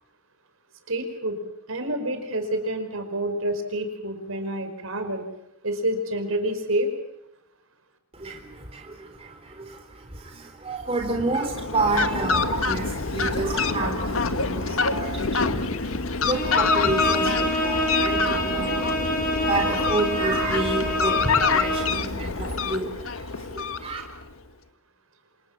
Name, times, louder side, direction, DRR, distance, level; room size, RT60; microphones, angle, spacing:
voice 1, 0.9-1.4 1.7-5.3 5.6-6.9, right 1 dB, 70° right, 7 dB, 5.2 m, -28 dB
voice 2, 8.1-24.0, right 2 dB, 25° right, 2 dB, 3.8 m, -30 dB
Fowl, 11.2-24.3, left 4 dB, 70° left, 1.5 m, -26 dB
Bowed string instrument, 16.3-22.0, left 1 dB, 40° left, 6.4 m, -27 dB
28.5 x 27.5 x 7.4 m, 0.81 s
head